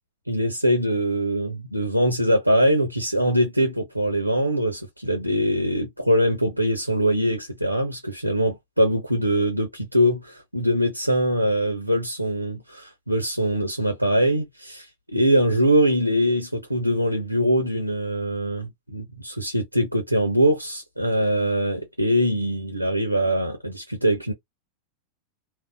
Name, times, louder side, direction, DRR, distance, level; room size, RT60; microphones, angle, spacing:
voice 1, 0.3-14.9 15.1-24.3, equal, 90° right, 0.8 m, -22 dB
3.9 x 2.3 x 2.2 m
figure-of-eight pair, 90°, 0 cm